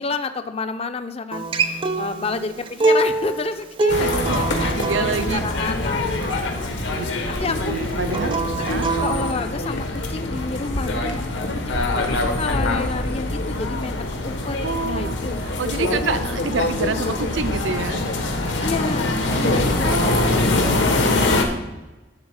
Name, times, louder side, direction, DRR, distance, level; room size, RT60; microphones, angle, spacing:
voice 1, 0.0-7.7 8.6-8.7 9.0-11.4 11.7-14.0 14.2-14.6 14.8-15.3 15.8-17.1 18.6-21.0, left 3 dB, 30° left, 9 dB, 0.5 m, -30 dB
Acoustic guitar, 1.3-6.5 8.1-9.3, right 3 dB, 25° right, 0.5 m, -24 dB
sound 1, 3.9-21.5, left 2 dB, 75° left, 1.3 m, -24 dB
voice 2, 4.0-5.4 7.4-9.0 14.6-18.0 18.4-18.7 19.8-21.2, right 4 dB, 75° right, 11 dB, 0.5 m, -28 dB
11.0 x 4.0 x 6.3 m, 1.0 s
head